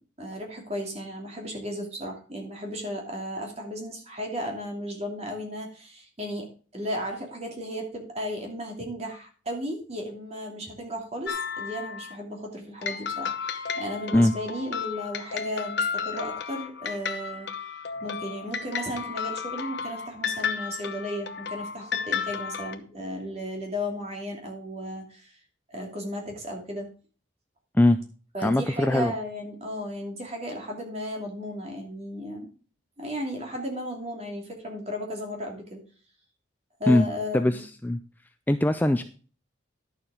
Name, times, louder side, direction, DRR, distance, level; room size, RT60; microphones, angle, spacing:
voice 1, 0.2-6.5 6.7-17.7 18.0-25.4 25.7-26.9 28.3-32.5 33.0-35.8 36.8-37.6, equal, 30° right, 1 dB, 2.8 m, -35 dB
sound 1, 11.3-12.2 12.8-22.8, left 6 dB, 55° left, 1.0 m, -33 dB
voice 2, 28.4-29.1 36.9-37.1 37.3-38.0 38.5-39.0, left 1 dB, 10° left, 9 dB, 0.4 m, -21 dB
11.0 x 7.1 x 5.0 m, 0.39 s
head